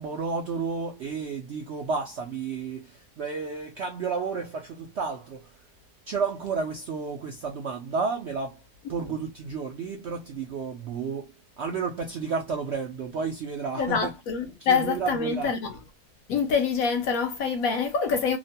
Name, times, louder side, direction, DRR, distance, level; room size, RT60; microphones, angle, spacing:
voice 1, 0.0-5.5 6.1-8.6 8.9-11.3 11.6-14.1 14.6-15.5, right 5 dB, 75° right, 0.6 m, -31 dB
voice 2, 13.8-15.8 16.3-18.4, left 5 dB, 70° left, 0.9 m, -26 dB
3.0 x 2.1 x 2.6 m
omnidirectional pair, 1.7 m